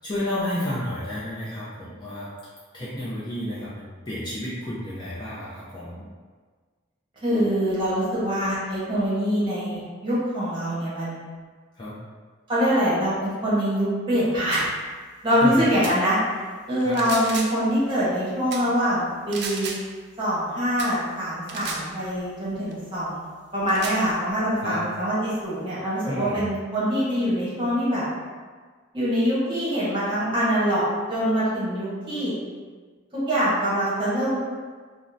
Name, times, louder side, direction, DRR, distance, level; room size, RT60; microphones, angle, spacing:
voice 1, 0.0-2.3 2.7-6.0 11.8-11.9 15.4-15.6 16.8-17.0 24.6-24.8 26.1-26.4, left 1 dB, 20° left, -9 dB, 0.4 m, -31 dB
voice 2, 7.2-11.2 12.5-14.7 15.2-16.2 16.7-19.7 20.2-23.2 23.5-28.1 28.9-30.8 31.1-32.3 33.1-34.4, equal, 25° right, -9 dB, 0.9 m, -24 dB
sound 1, 14.5-14.7 15.8-16.0 16.8-17.7 18.5-18.7 19.3-19.9 20.8-21.0 21.5-21.9 22.7-22.8 23.7-24.0, right 5 dB, 50° right, 0.3 m, -34 dB
3.5 x 2.0 x 2.6 m, 1.5 s
head